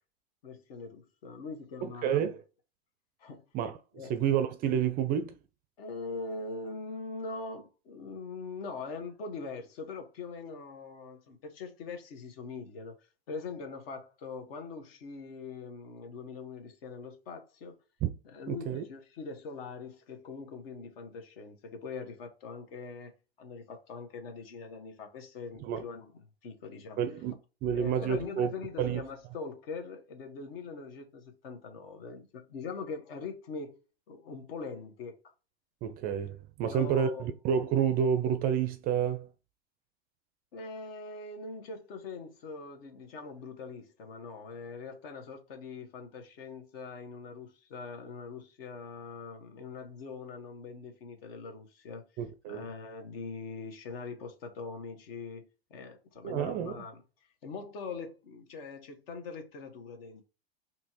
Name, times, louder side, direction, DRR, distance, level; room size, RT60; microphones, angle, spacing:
voice 1, 0.4-2.3 3.2-3.4 3.9-4.1 5.8-13.0 13.3-17.8 18.2-23.1 23.4-26.1 26.4-27.0 27.7-33.8 34.1-35.2 36.6-37.3 40.5-52.0 52.5-57.0 57.4-60.2, left 4 dB, 60° left, 1.2 m, -42 dB
voice 2, 1.8-2.4 3.5-3.8 4.1-5.4 18.0-18.1 18.5-18.8 25.6-25.8 27.0-27.4 27.6-28.5 28.8-29.0 35.8-39.3 52.2-52.7 56.2-56.8, right 8 dB, 30° right, 0.4 m, -29 dB
4.3 x 2.9 x 2.8 m
hypercardioid pair, 100°, 32 cm